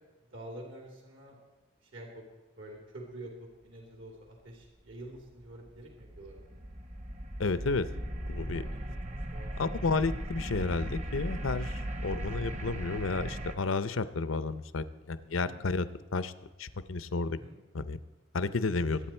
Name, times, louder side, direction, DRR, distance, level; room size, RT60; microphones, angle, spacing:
voice 1, 0.3-1.4 1.8-2.2 2.6-6.6 8.5-9.9 15.4-15.6 17.3-17.6 18.7-19.0, right 1 dB, 75° right, 1 dB, 2.9 m, -48 dB
sound 1, 5.1-13.5, right 1 dB, 35° right, 1.0 m, -37 dB
voice 2, 7.4-7.9 8.3-8.6 9.6-15.9 16.1-16.3 16.6-17.4 17.7-18.0 18.3-19.0, left 3 dB, 85° left, 14 dB, 0.7 m, -31 dB
23.5 x 8.9 x 4.4 m, 1.2 s
head